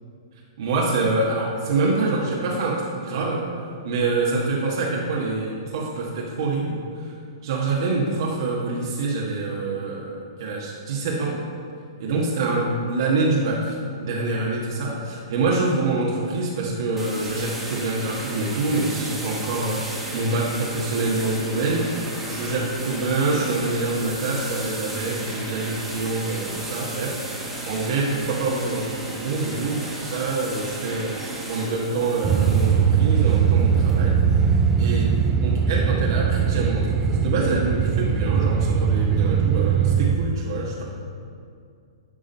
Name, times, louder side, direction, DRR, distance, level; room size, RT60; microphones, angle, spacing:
voice 1, 0.6-3.5 3.8-7.1 7.4-11.4 12.0-21.9 22.3-34.2 34.8-35.1 35.4-40.8, right 3 dB, 65° right, -4 dB, 1.4 m, -26 dB
sound 1, 17.0-35.3, right 1 dB, 5° right, 1.5 m, -34 dB
sound 2, 32.2-40.2, right 7 dB, 25° right, 0.4 m, -20 dB
11.0 x 3.8 x 5.4 m, 2.4 s
hypercardioid pair, 130°, 3 cm